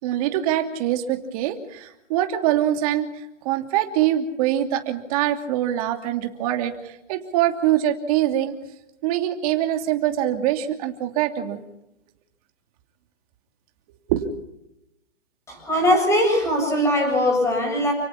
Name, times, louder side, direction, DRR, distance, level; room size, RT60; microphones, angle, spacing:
voice 1, 0.0-8.5 9.0-11.6 14.1-14.3, right 12 dB, 30° right, 5 dB, 2.9 m, -24 dB
voice 2, 15.5-17.9, left 1 dB, 5° left, 3 dB, 7.7 m, -20 dB
30.0 x 18.5 x 5.7 m, 0.86 s
hypercardioid pair, 155°, 37 cm